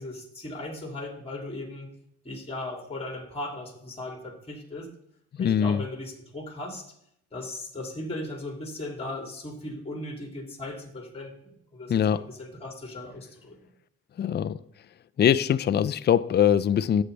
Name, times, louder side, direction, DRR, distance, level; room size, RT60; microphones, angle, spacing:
voice 1, 0.0-1.9 2.2-4.9 5.4-6.8 7.3-13.7, left 2 dB, 20° left, 2.7 m, -37 dB
voice 2, 5.4-5.8 11.9-12.2 14.2-14.6 15.2-17.0, left 9 dB, 35° left, 0.5 m, -22 dB
11.5 x 8.1 x 3.3 m
cardioid pair, 90°, 30 cm